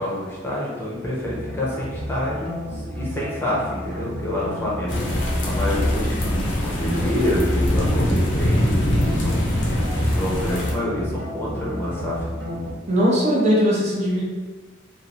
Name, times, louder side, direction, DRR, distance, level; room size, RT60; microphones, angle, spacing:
voice 1, 0.0-9.4 9.6-12.6, left 1 dB, 10° left, -6 dB, 0.6 m, -28 dB
sound 1, 1.2-8.7 9.0-12.7, equal, 85° right, 0.8 m, -33 dB
sound 2, 4.9-10.7, left 1 dB, 70° left, 0.6 m, -22 dB
voice 2, 12.9-14.2, equal, 35° right, -4 dB, 0.5 m, -19 dB
3.0 x 2.4 x 2.7 m, 1.3 s
head